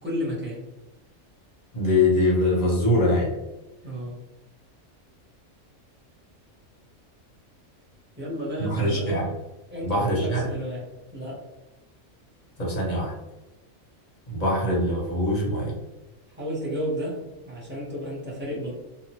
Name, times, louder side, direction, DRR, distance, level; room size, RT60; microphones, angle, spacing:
voice 1, 0.0-0.6 3.8-4.2 8.2-9.3 9.7-10.8 11.1-11.4 16.3-18.7, equal, 10° right, -6 dB, 0.7 m, -32 dB
voice 2, 1.7-3.3 8.6-9.3 9.8-10.5 12.6-13.1 14.3-15.7, left 1 dB, 40° left, -3 dB, 0.7 m, -23 dB
2.9 x 2.4 x 2.8 m, 1.0 s
omnidirectional pair, 1.4 m